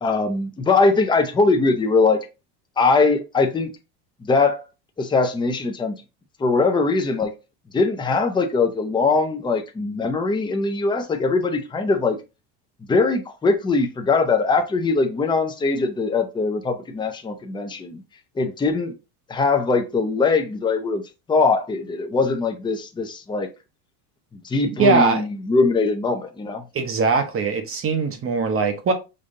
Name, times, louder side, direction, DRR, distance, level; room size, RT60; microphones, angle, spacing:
voice 1, 0.0-2.3 2.8-3.7 4.2-4.6 5.0-6.0 6.4-7.3 7.7-12.2 12.9-18.0 18.4-18.9 19.3-21.0 21.3-23.5 24.4-26.6, left 3 dB, 10° left, 0.6 m, -21 dB
voice 2, 24.8-25.3 26.7-28.9, right 4 dB, 30° right, 0.8 m, -21 dB
5.3 x 2.6 x 2.6 m
supercardioid pair, 105°, 47 cm